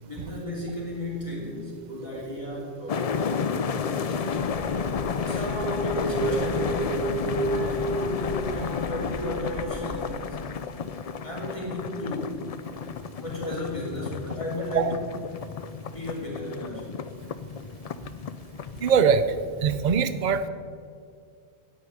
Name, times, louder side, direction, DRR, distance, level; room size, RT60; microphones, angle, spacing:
voice 1, 0.1-4.6 5.2-10.4 11.2-12.4 13.1-15.0 15.9-16.9, left 1 dB, 30° left, -5 dB, 3.1 m, -35 dB
sound 1, 1.4-8.4, right 3 dB, 80° left, 2.4 m, -33 dB
sound 2, 2.9-19.0, left 6 dB, 50° left, 0.4 m, -32 dB
sound 3, 4.3-10.0, left 1 dB, 85° right, 4.3 m, -39 dB
voice 2, 18.8-19.2 19.6-20.5, right 6 dB, 45° right, 12 dB, 0.7 m, -21 dB
9.4 x 9.0 x 9.4 m, 2.2 s
omnidirectional pair, 1.1 m